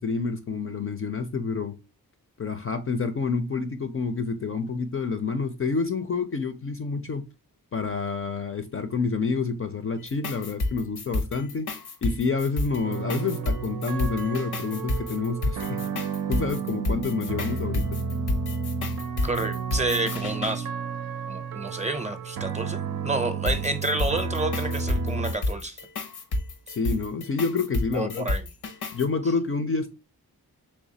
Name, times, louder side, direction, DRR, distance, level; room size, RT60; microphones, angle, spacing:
voice 1, 0.0-1.7 2.4-7.3 7.7-11.7 12.0-15.8 16.3-18.0 26.7-28.3 28.9-29.9, left 4 dB, 35° left, 0.4 m, -28 dB
sound 1, 10.0-20.6 23.5-29.1, left 2 dB, 85° left, 0.7 m, -30 dB
sound 2, 12.8-25.3, right 5 dB, 70° right, 0.5 m, -32 dB
voice 2, 19.2-20.7 21.3-25.8 27.9-28.5, right 2 dB, 20° right, 0.6 m, -29 dB
3.4 x 3.2 x 2.7 m
wide cardioid pair, 85°, 37 cm